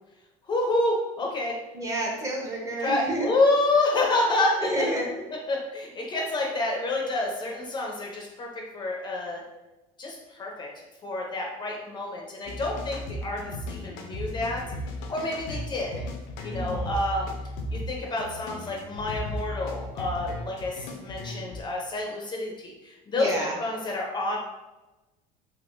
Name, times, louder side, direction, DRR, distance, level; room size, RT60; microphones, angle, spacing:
voice 1, 0.5-1.5 2.8-4.9 5.5-8.5 8.7-9.4 10.0-14.6 15.1-15.9 16.4-17.3 17.7-24.4, left 2 dB, 25° left, 0 dB, 0.5 m, -28 dB
voice 2, 1.7-3.3 4.6-5.1 16.5-16.9 23.1-23.6, right 1 dB, 20° right, -1 dB, 0.7 m, -30 dB
sound 1, 12.5-21.6, left 1 dB, 75° left, 0.5 m, -35 dB
3.5 x 2.8 x 2.5 m, 1.1 s
cardioid pair, 140°, 17 cm